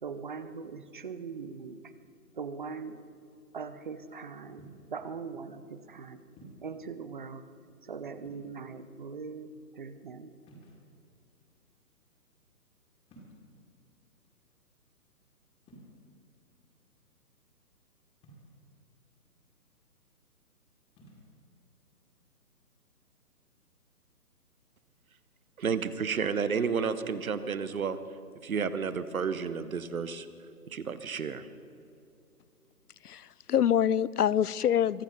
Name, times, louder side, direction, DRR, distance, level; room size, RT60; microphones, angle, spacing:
voice 1, 0.0-1.9 2.3-3.0 3.5-6.2 6.6-7.5 7.8-10.3, right 5 dB, 30° right, 13 dB, 0.6 m, -41 dB
sound 1, 4.6-5.0 6.4-6.8 8.2-8.8 10.4-11.2 13.1-13.6 15.6-15.9 18.2-18.7 20.9-21.3, right 1 dB, 10° left, 2.1 m, -53 dB
voice 2, 25.6-28.0 28.4-30.3 30.7-31.5, right 6 dB, 60° right, 13 dB, 1.1 m, -31 dB
voice 3, 33.0-35.0, left 9 dB, 70° left, 21 dB, 0.5 m, -26 dB
23.5 x 9.4 x 5.3 m, 2.4 s
figure-of-eight pair, 140°, 47 cm